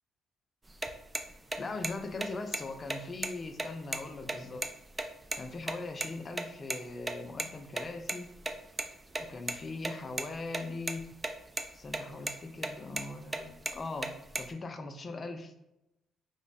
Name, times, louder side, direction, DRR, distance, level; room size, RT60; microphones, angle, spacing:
sound 1, 0.7-5.7 6.0-6.1 6.4-6.5 6.7-6.8 7.1-7.2 7.4-7.5 7.8-8.8 9.1-9.6 9.8-10.6 10.9-11.3 11.6-12.0 12.3-12.4 12.6-13.1 13.3-14.5, right 2 dB, 25° right, 0.4 m, -34 dB
voice 1, 1.6-4.7 5.4-8.3 9.2-11.1 11.7-14.1 14.4-15.5, left 3 dB, 40° left, 7 dB, 0.4 m, -40 dB
3.1 x 2.1 x 4.0 m, 0.90 s
supercardioid pair, 65°, 0 cm